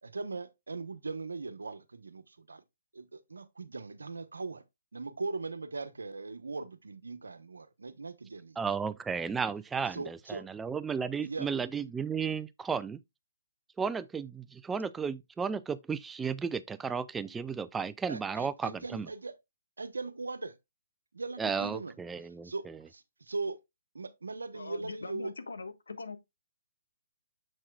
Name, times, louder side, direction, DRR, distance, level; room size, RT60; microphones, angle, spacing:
voice 1, 0.0-2.6 2.9-4.6 4.9-8.6 9.9-10.4 11.2-11.5 18.1-19.3 19.8-20.6 21.1-21.9 22.4-23.6 23.9-25.3, right 3 dB, 90° right, 1.0 m, -39 dB
voice 2, 8.6-13.0 13.8-19.1 21.4-22.8, right 6 dB, 10° right, 0.4 m, -34 dB
voice 3, 24.5-26.2, left 4 dB, 85° left, 1.4 m, -42 dB
7.4 x 6.4 x 2.3 m
hypercardioid pair, 150°, 0 cm